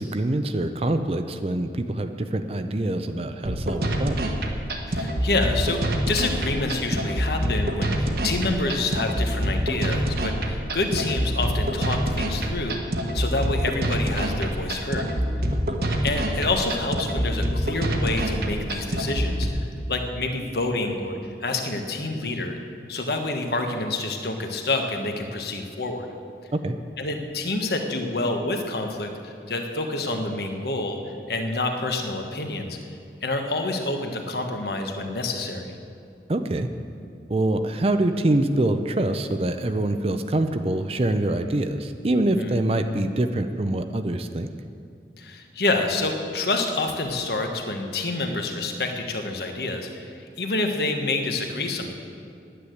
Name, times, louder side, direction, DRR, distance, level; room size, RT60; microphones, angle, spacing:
voice 1, 0.0-4.3 15.5-15.8 26.5-26.7 36.3-36.7 37.3-44.5, right 1 dB, 35° right, 8 dB, 0.5 m, -25 dB
sound 1, 3.5-19.5, equal, 60° right, 1.2 m, -26 dB
voice 2, 4.9-12.8 13.1-15.1 16.0-22.6 22.9-26.1 27.0-31.0 31.3-32.8 33.2-35.7 42.3-42.6 45.2-51.9, left 2 dB, 65° left, 4 dB, 1.3 m, -28 dB
10.0 x 9.9 x 7.9 m, 2.4 s
head